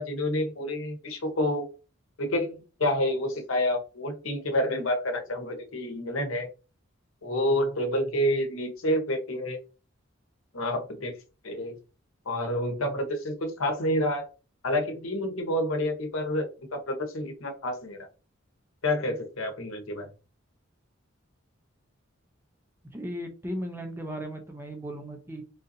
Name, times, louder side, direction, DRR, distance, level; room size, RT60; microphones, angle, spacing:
voice 1, 0.0-1.7 2.2-6.5 7.2-9.6 10.5-11.1 11.4-11.8 12.3-14.3 14.6-16.5 16.7-18.1 18.8-20.1, left 1 dB, 85° left, 4 dB, 0.9 m, -28 dB
voice 2, 22.9-25.4, equal, 10° right, 4 dB, 0.5 m, -36 dB
3.7 x 2.6 x 2.6 m, 0.33 s
head